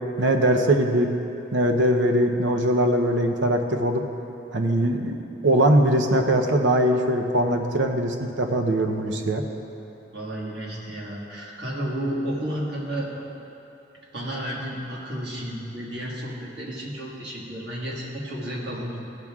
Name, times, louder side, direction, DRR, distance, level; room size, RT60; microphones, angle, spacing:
voice 1, 0.2-1.1 1.5-4.0 4.5-5.2 5.4-9.4, right 1 dB, 85° right, 4 dB, 0.8 m, -21 dB
voice 2, 10.1-13.1 14.1-19.0, equal, 60° right, -4 dB, 1.8 m, -32 dB
15.0 x 5.9 x 3.6 m, 2.9 s
head